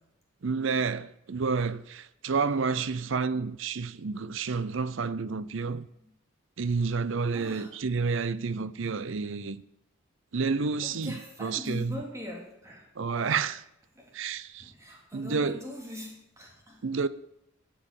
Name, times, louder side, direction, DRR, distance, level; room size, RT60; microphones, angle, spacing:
voice 1, 0.4-5.9 6.6-9.6 10.3-12.0 13.0-13.6 14.1-14.7 15.1-15.6 16.8-17.1, right 4 dB, 65° right, 0.6 m, -30 dB
voice 2, 7.3-7.7 10.8-13.4 13.9-14.1 14.6-16.8, left 1 dB, 15° right, 2.8 m, -42 dB
11.0 x 7.8 x 6.9 m
head